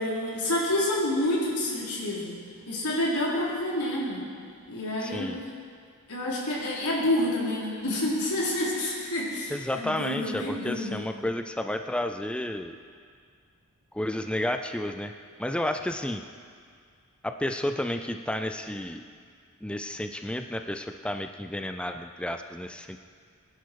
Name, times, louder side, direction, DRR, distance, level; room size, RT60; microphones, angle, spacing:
voice 1, 0.0-2.4 2.7-4.2 4.7-5.5 6.1-11.0, left 1 dB, 90° left, -5 dB, 4.3 m, -28 dB
voice 2, 5.0-5.4 9.5-12.8 13.9-15.1 15.4-16.2 17.2-19.0 19.6-23.0, left 1 dB, 5° left, 6 dB, 0.4 m, -31 dB
22.0 x 11.0 x 4.8 m, 2.1 s
head